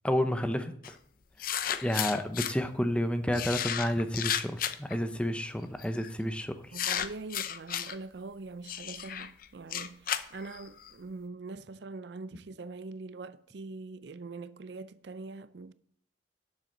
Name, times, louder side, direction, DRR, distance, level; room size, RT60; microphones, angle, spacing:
voice 1, 0.0-1.0 1.8-6.7, equal, 5° left, 0.7 m, -30 dB
sound 1, 0.8-0.9 1.4-2.5 3.3-4.9 5.8-6.1 6.7-7.9 8.7-10.9, left 10 dB, 50° left, 0.6 m, -33 dB
voice 2, 6.7-15.7, right 3 dB, 65° right, 0.5 m, -43 dB
11.5 x 7.7 x 3.9 m
head